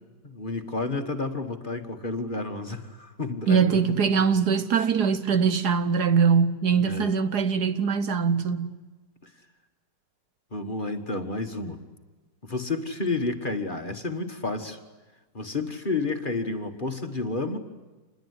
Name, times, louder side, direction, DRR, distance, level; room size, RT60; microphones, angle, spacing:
voice 1, 0.2-4.3 6.8-7.1 10.5-11.8 12.4-14.8 15.3-17.6, left 3 dB, 30° left, 1.7 m, -31 dB
voice 2, 3.5-8.8, right 6 dB, 65° right, 1.5 m, -22 dB
27.5 x 21.0 x 9.7 m
omnidirectional pair, 1.9 m